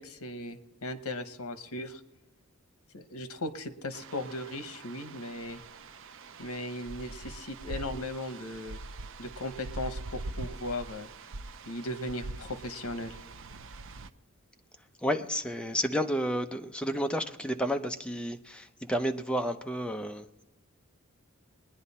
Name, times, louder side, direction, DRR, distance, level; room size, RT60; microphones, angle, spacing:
voice 1, 0.0-2.0 2.9-5.6 6.4-8.8 9.2-11.1 11.7-13.2, left 1 dB, 80° left, 1.1 m, -37 dB
sound 1, 3.9-14.1, right 2 dB, 60° right, 0.6 m, -43 dB
voice 2, 15.0-20.4, equal, 5° left, 0.6 m, -31 dB
21.0 x 10.0 x 4.2 m
head